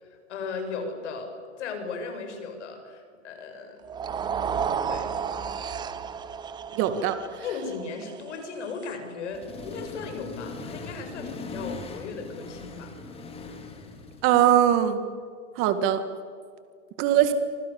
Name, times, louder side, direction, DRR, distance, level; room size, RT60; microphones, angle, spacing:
voice 1, 0.0-3.9 4.9-5.1 7.4-13.0, left 4 dB, 65° left, 5 dB, 7.3 m, -36 dB
sound 1, 3.8-10.1, right 7 dB, 10° right, 0.8 m, -33 dB
voice 2, 6.8-7.2 14.2-15.0 15.6-16.0 17.0-17.3, right 11 dB, 35° right, 9 dB, 2.0 m, -21 dB
Accelerating revving vroom, 9.3-14.5, left 3 dB, 15° left, 3.2 m, -40 dB
29.0 x 25.5 x 7.2 m, 2.1 s
hypercardioid pair, 145°, 38 cm